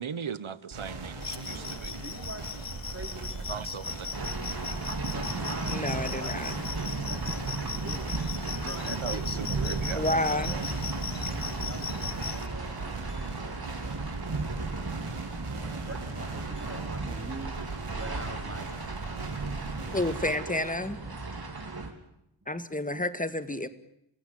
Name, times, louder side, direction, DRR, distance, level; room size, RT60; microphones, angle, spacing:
voice 1, 0.0-2.0 3.5-4.3 8.8-10.0 10.4-10.7, right 7 dB, 70° right, 16 dB, 1.3 m, -38 dB
voice 2, 0.7-2.6 2.9-3.7 4.9-7.5 7.7-8.3 8.6-10.0 10.2-10.5 11.6-14.8 15.5-19.2 19.7-21.2 22.4-22.6, right 2 dB, 25° right, 4 dB, 4.9 m, -45 dB
sound 1, 0.7-20.3, right 3 dB, 90° right, 3.7 m, -40 dB
sound 2, 1.2-12.5, left 6 dB, 45° left, 0.9 m, -39 dB
sound 3, 4.1-21.9, right 3 dB, 50° right, 3.8 m, -35 dB
voice 3, 5.7-6.5 10.0-10.5 19.9-21.0 22.5-23.7, left 1 dB, 15° left, 12 dB, 2.0 m, -30 dB
29.5 x 16.0 x 9.3 m, 0.77 s
wide cardioid pair, 55°, 49 cm